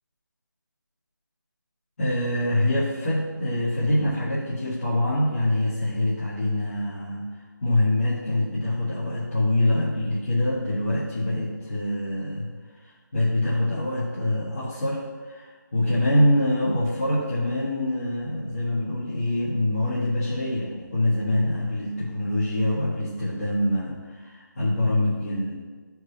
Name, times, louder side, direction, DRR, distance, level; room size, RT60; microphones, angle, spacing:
voice 1, 2.0-12.5 12.8-25.5, left 1 dB, 40° left, -10 dB, 1.7 m, -25 dB
11.5 x 4.7 x 2.8 m, 1.4 s
figure-of-eight pair, 160°, 11 cm